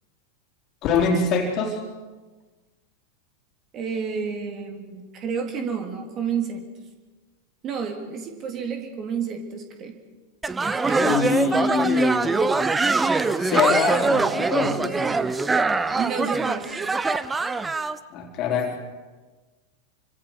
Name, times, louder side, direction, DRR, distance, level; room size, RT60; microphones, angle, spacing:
voice 1, 0.8-1.8 11.0-12.5 13.4-15.0 18.1-18.8, left 5 dB, 35° left, 2 dB, 3.9 m, -24 dB
voice 2, 3.7-6.6 7.6-10.0 10.8-11.1 16.0-17.0, right 6 dB, 30° right, 3 dB, 3.4 m, -30 dB
sound 1, 10.4-18.0, right 3 dB, 10° right, 0.9 m, -23 dB
29.5 x 25.0 x 5.0 m, 1.3 s
figure-of-eight pair, 90°, 0 cm